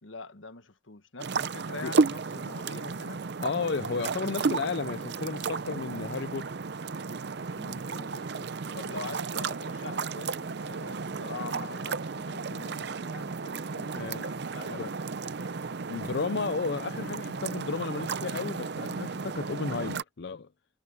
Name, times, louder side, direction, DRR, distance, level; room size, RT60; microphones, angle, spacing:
voice 1, 0.0-3.3 7.6-14.9, left 3 dB, 80° left, 1.4 m, -44 dB
sound 1, 1.2-20.0, right 4 dB, 60° right, 0.6 m, -33 dB
voice 2, 3.4-6.5 13.9-14.3 14.7-14.9 15.9-20.5, left 4 dB, 60° left, 0.5 m, -33 dB
head